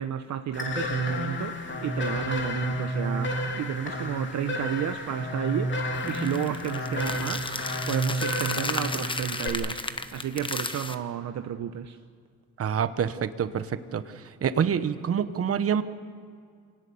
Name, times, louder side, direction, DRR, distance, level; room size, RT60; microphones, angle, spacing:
voice 1, 0.0-5.8 6.1-7.6 7.9-12.0, right 9 dB, 65° right, 0.9 m, -32 dB
sound 1, 0.5-9.5, left 1 dB, 40° left, 3.0 m, -31 dB
sound 2, 5.9-10.9, left 3 dB, 15° left, 1.2 m, -34 dB
voice 2, 12.6-15.8, right 8 dB, 50° right, 1.2 m, -27 dB
27.0 x 18.5 x 7.0 m
cardioid pair, 90°, 30 cm